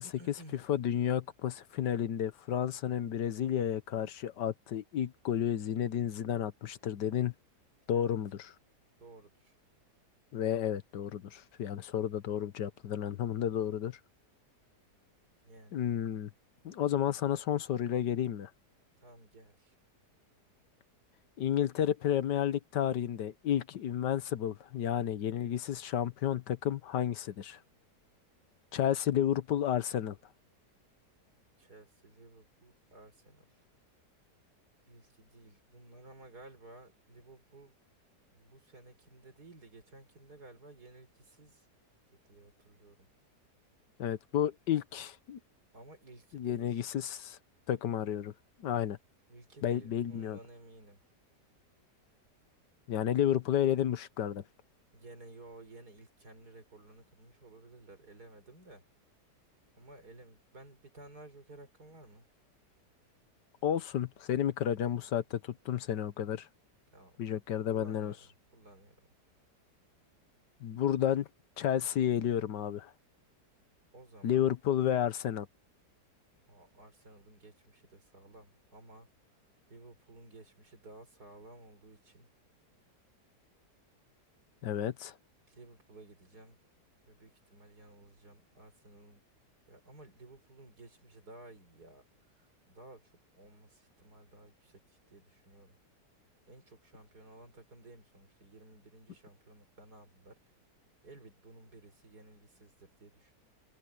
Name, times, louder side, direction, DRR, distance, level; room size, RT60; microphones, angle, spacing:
voice 1, 0.0-0.7 7.9-8.1 9.0-9.5 15.4-15.8 19.0-19.8 31.6-33.6 34.9-37.8 38.3-41.7 42.2-43.1 45.7-46.9 49.3-51.0 54.9-58.8 59.8-62.3 66.9-67.2 67.7-69.0 73.9-74.5 76.5-79.1 79.7-82.3 85.4-86.6 87.1-89.2 89.7-95.8 96.4-100.4 101.0-103.4, right 2 dB, 65° right, 5.6 m, -55 dB
voice 2, 0.7-7.3 7.9-8.3 10.3-14.0 15.7-16.3 16.6-18.5 21.4-27.6 28.7-30.2 44.0-45.4 46.3-47.4 47.7-48.3 48.6-49.0 49.6-50.4 52.9-54.4 63.6-66.5 67.2-68.1 70.6-71.3 71.6-72.9 74.2-75.5 84.6-85.1, left 10 dB, 90° left, 1.6 m, -31 dB
omnidirectional pair, 1.8 m